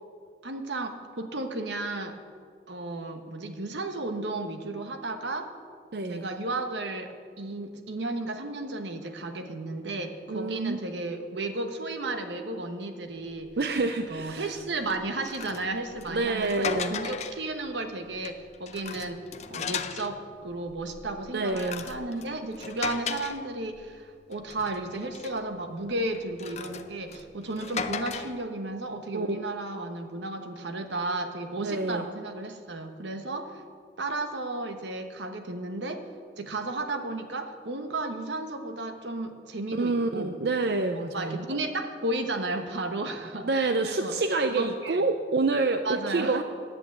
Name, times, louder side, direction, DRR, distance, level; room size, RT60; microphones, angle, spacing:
voice 1, 0.4-2.2 2.7-5.5 6.1-13.6 14.1-19.2 19.5-33.6 34.0-36.0 36.4-40.4 41.0-44.1 44.5-45.0 45.8-46.4, right 2 dB, 85° right, 6 dB, 1.1 m, -34 dB
voice 2, 5.9-6.3 10.3-10.8 13.6-14.5 16.1-17.0 21.3-21.9 29.1-29.4 31.6-32.1 39.7-41.4 43.4-46.4, right 3 dB, 65° right, 7 dB, 0.5 m, -27 dB
sound 1, 13.5-13.7 14.1-14.4 14.9-17.5 18.0-20.2 20.7-24.0 24.3-25.5 26.1-28.5, left 6 dB, 40° left, 0.5 m, -37 dB
9.9 x 8.7 x 8.2 m, 2.1 s
head